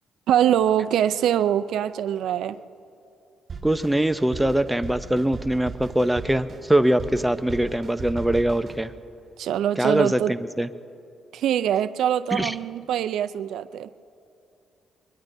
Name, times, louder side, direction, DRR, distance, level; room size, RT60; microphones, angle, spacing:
voice 1, 0.3-2.6 9.4-10.3 11.3-13.9, right 10 dB, 80° right, 12 dB, 0.4 m, -23 dB
Drum kit, 3.5-8.8, right 4 dB, 40° right, 5.0 m, -38 dB
voice 2, 3.6-8.9 9.8-10.7 12.3-12.5, right 1 dB, 5° right, 10 dB, 0.6 m, -22 dB
23.0 x 21.5 x 2.7 m, 2.5 s
cardioid pair, 90°, 0 cm